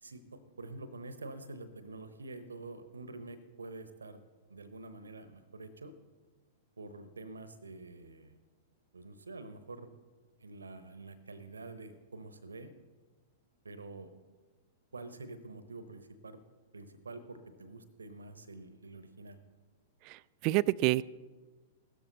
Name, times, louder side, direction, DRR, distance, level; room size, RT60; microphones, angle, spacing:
voice 1, 0.0-4.2 4.5-5.9 6.8-8.4 8.9-9.9 10.4-12.7 13.6-14.1 14.9-16.4 16.7-19.4, right 2 dB, 75° right, 12 dB, 0.9 m, -47 dB
voice 2, 20.1-21.0, right 19 dB, 40° right, 20 dB, 0.3 m, -28 dB
16.0 x 13.0 x 4.0 m, 1.3 s
figure-of-eight pair, 100°, 0 cm